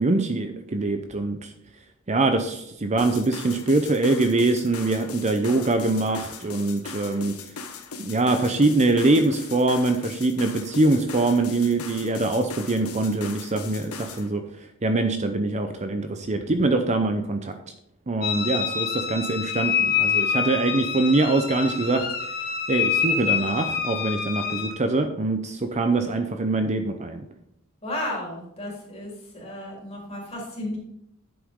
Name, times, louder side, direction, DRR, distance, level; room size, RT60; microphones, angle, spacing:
voice 1, 0.0-1.5 2.1-7.3 8.0-14.4 14.8-17.5 18.1-22.1 22.7-27.2, right 2 dB, 30° right, 7 dB, 0.7 m, -23 dB
sound 1, 3.0-14.3, left 4 dB, 70° left, 1.0 m, -39 dB
sound 2, 18.2-24.7, left 7 dB, 45° left, 1.4 m, -26 dB
voice 2, 27.8-30.8, left 1 dB, 30° left, -3 dB, 3.6 m, -33 dB
10.0 x 7.9 x 3.7 m, 0.76 s
head